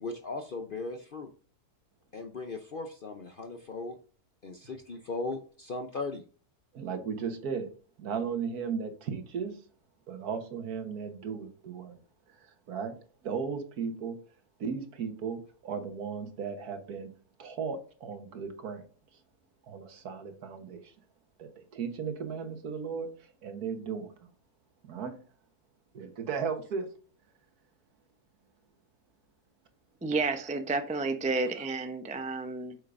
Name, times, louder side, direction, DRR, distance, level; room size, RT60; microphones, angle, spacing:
voice 1, 0.0-1.3 2.1-4.0 4.4-6.2, left 3 dB, 50° left, 6 dB, 0.6 m, -37 dB
voice 2, 6.7-7.7 8.0-9.6 10.1-12.0 12.7-13.0 13.2-14.2 14.6-17.1 17.4-18.8 19.7-20.9 21.4-24.1 24.9-25.1 25.9-26.9, right 6 dB, 70° right, 6 dB, 1.7 m, -36 dB
voice 3, 30.0-32.8, right 3 dB, 10° right, 6 dB, 0.3 m, -31 dB
8.1 x 6.5 x 2.6 m, 0.40 s
omnidirectional pair, 1.7 m